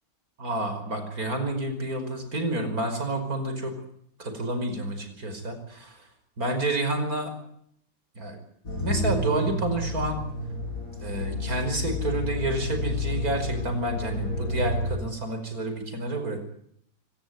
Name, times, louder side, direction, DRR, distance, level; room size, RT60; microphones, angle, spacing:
voice 1, 0.4-3.7 4.2-6.0 6.4-7.3 8.2-8.4 8.8-10.2 11.0-16.4, right 2 dB, 85° right, 7 dB, 5.7 m, -29 dB
sound 1, 8.7-15.0, left 1 dB, 70° left, 5.4 m, -30 dB
25.0 x 18.0 x 9.5 m, 0.69 s
omnidirectional pair, 1.5 m